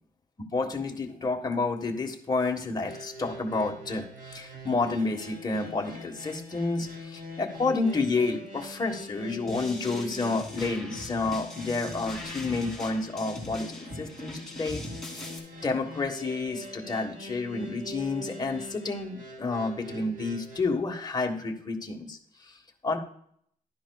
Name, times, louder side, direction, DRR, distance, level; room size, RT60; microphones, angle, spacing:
voice 1, 0.5-14.8 15.1-15.3 15.6-23.0, left 3 dB, 25° left, 2 dB, 1.4 m, -30 dB
sound 1, 2.8-20.6, left 1 dB, 60° right, 2.4 m, -43 dB
sound 2, 9.5-15.4, left 1 dB, ahead, 2.6 m, -41 dB
12.0 x 10.0 x 2.3 m, 0.65 s
cardioid pair, 120°, 15 cm